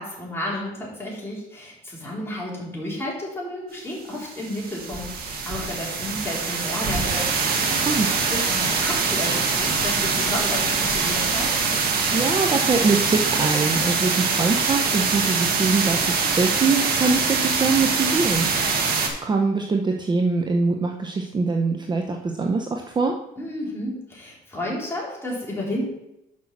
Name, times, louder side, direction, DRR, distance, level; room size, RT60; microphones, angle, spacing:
voice 1, 0.0-7.3 7.7-7.9 8.3-11.5 23.4-25.9, left 1 dB, 15° left, -5 dB, 3.6 m, -32 dB
sound 1, 4.1-19.1, right 4 dB, 65° right, 1.6 m, -23 dB
voice 2, 12.1-23.1, right 4 dB, 25° right, 2 dB, 0.8 m, -23 dB
6.4 x 5.6 x 6.0 m, 0.86 s
cardioid pair, 110°, 17 cm